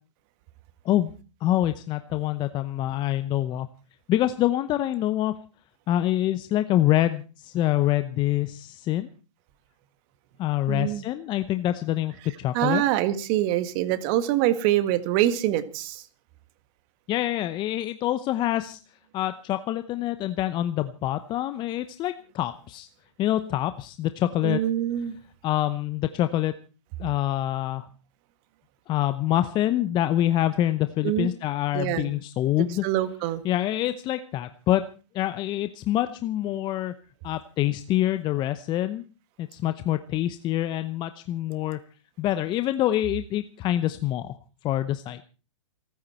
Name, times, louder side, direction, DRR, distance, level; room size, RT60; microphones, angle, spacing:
voice 1, 1.4-3.7 4.1-5.3 5.9-9.1 10.4-12.8 17.1-18.8 19.1-22.9 23.2-24.6 25.4-26.5 27.0-27.9 28.9-32.8 33.4-34.8 35.1-36.9 37.2-39.0 39.4-41.8 42.2-44.4 44.6-45.2, left 13 dB, 25° left, 11 dB, 0.8 m, -26 dB
voice 2, 10.7-11.0 12.5-16.0 24.4-25.2 31.0-31.3 31.7-32.1 32.8-33.4, right 13 dB, 40° right, 11 dB, 1.9 m, -25 dB
28.5 x 9.6 x 4.4 m, 0.36 s
hypercardioid pair, 125°, 17 cm